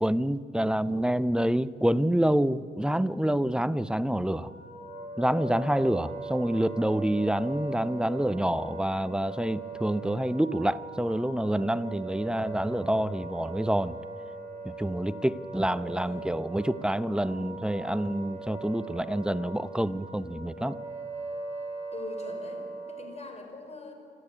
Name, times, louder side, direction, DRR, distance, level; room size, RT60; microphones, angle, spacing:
voice 1, 0.0-4.5 5.2-14.0 14.6-20.8, right 1 dB, 5° right, 16 dB, 0.6 m, -27 dB
Wind instrument woodwind instrument, 4.2-23.3, right 3 dB, 30° right, 6.3 m, -40 dB
voice 2, 15.8-16.3 21.9-23.9, left 3 dB, 35° left, 4 dB, 4.9 m, -43 dB
27.5 x 13.0 x 9.9 m, 2.7 s
cardioid pair, 90°, 20 cm